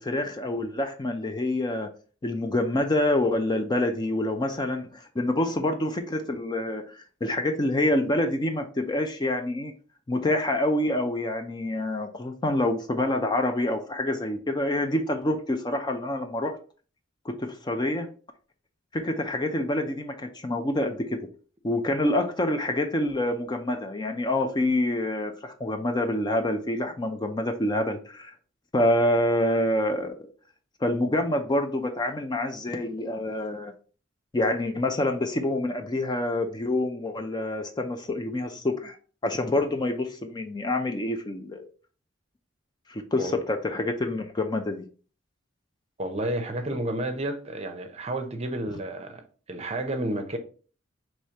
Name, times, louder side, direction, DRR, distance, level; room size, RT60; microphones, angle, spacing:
voice 1, 0.0-1.9 2.2-9.7 10.1-16.6 17.3-18.1 18.9-21.3 21.6-28.3 28.7-30.3 30.8-33.7 34.3-39.0 39.2-41.7 42.9-44.9, left 1 dB, 20° left, 0.4 m, -27 dB
voice 2, 46.0-50.4, right 1 dB, 30° right, 0.6 m, -31 dB
4.8 x 3.2 x 2.8 m
head